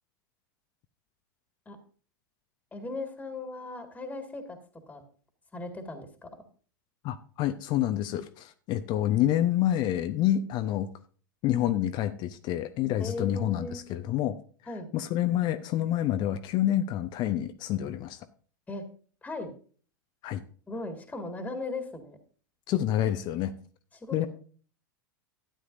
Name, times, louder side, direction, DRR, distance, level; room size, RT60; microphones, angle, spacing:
voice 1, 2.7-4.6 4.9-5.0 5.5-6.3 13.0-13.8 14.7-14.9 18.7-18.9 19.2-19.5 20.7-22.2 23.9-24.3, left 2 dB, 10° left, 6 dB, 1.9 m, -37 dB
voice 2, 7.0-10.9 11.4-14.4 14.9-18.2 20.2-20.4 22.7-23.5 24.1-24.3, left 12 dB, 40° left, 10 dB, 0.7 m, -28 dB
12.5 x 9.5 x 2.6 m, 0.41 s
hypercardioid pair, 95°, 11 cm